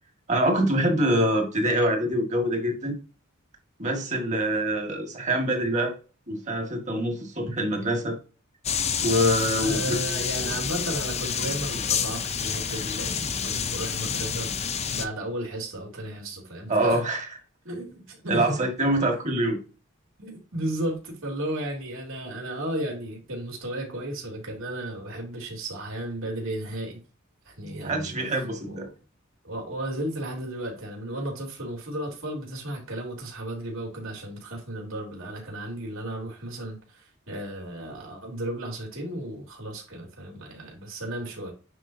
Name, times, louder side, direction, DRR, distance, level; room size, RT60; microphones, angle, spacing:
voice 1, 0.3-3.0 3.8-5.9 6.3-8.2 9.0-10.2 16.7-17.4 18.3-19.6 27.7-28.9, right 1 dB, 35° right, 2.0 m, -25 dB
sound 1, 8.6-15.0, left 7 dB, 30° left, 0.6 m, -29 dB
voice 2, 9.6-14.6 14.9-17.0 17.6-18.6 20.2-27.0 27.4-28.1 28.7-28.9 29.4-41.5, right 1 dB, 70° right, 3.4 m, -34 dB
9.1 x 4.7 x 2.8 m
head